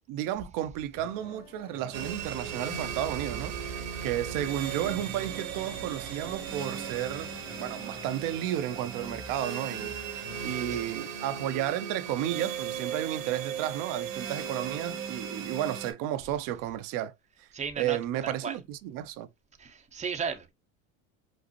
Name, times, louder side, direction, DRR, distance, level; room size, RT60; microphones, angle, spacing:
voice 1, 0.1-7.3 7.6-17.1 17.4-17.5 17.8-19.3, right 12 dB, 60° right, 0.7 m, -33 dB
sound 1, 0.9-11.3, left 3 dB, 25° left, 1.9 m, -50 dB
sound 2, 1.9-15.9, right 7 dB, 85° right, 1.1 m, -37 dB
voice 2, 10.3-10.8 17.5-18.0 18.2-18.5 19.6-20.5, right 6 dB, 20° right, 0.8 m, -35 dB
5.1 x 2.0 x 2.9 m
supercardioid pair, 95°, 38 cm